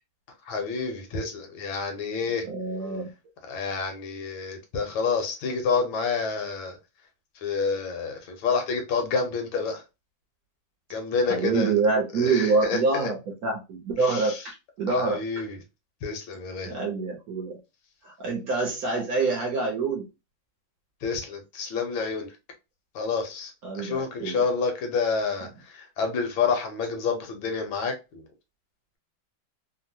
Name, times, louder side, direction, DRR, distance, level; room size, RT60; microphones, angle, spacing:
voice 1, 0.5-2.5 3.5-6.8 7.4-9.8 10.9-11.7 12.1-13.1 14.0-14.4 14.9-15.6 16.0-16.8 21.0-22.3 22.9-28.2, left 5 dB, 80° left, 1.6 m, -28 dB
voice 2, 2.4-3.1 11.3-15.2 16.7-17.6 18.0-20.1 23.6-24.4, right 4 dB, 60° right, 1.0 m, -26 dB
3.5 x 2.1 x 2.6 m
omnidirectional pair, 2.1 m